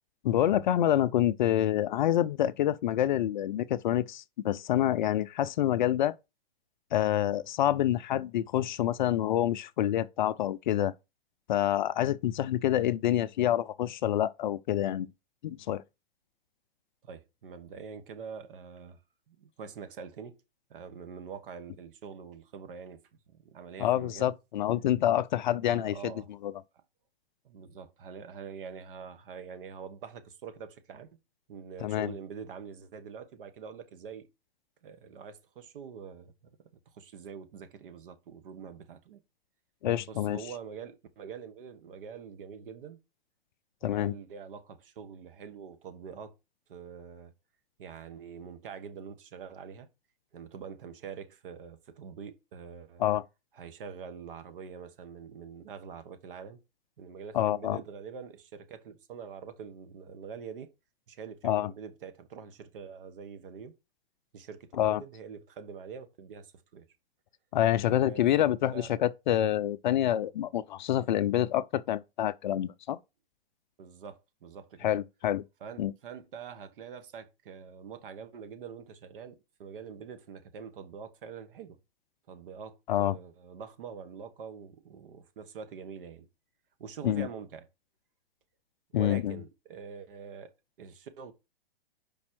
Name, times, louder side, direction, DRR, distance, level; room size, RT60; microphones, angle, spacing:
voice 1, 0.2-6.1 6.9-10.9 11.5-15.1 15.4-15.8 23.8-26.1 26.4-26.5 31.8-32.1 39.8-40.4 43.8-44.1 53.0-53.2 57.3-57.8 61.4-61.7 64.8-65.0 67.5-73.0 74.8-75.4 75.8-75.9 82.9-83.2 87.0-87.3 88.9-89.4, left 12 dB, 50° left, 0.4 m, -27 dB
voice 2, 17.0-19.0 19.3-20.4 20.7-23.0 23.3-24.3 25.6-26.3 27.4-31.1 31.5-34.3 34.8-36.5 36.9-39.2 40.1-43.0 43.8-46.3 46.7-47.3 47.8-49.9 50.3-53.0 53.5-56.6 57.0-60.7 61.1-63.8 64.3-66.9 67.8-68.9 73.8-74.9 75.6-81.8 82.3-86.2 86.8-87.6 88.9-90.5 90.8-91.3, right 6 dB, 60° right, 1.5 m, -45 dB
5.4 x 4.1 x 6.1 m
hypercardioid pair, 140°, 31 cm